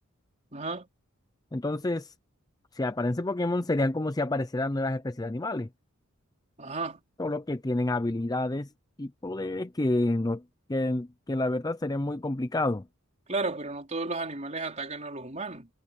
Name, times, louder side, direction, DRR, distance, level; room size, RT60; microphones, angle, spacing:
voice 1, 0.5-0.9 6.6-7.0 13.3-15.7, right 3 dB, 30° right, 4.4 m, -33 dB
voice 2, 1.5-2.1 2.7-5.7 7.2-8.7 9.0-10.4 10.7-12.8, left 2 dB, 15° left, 0.5 m, -29 dB
head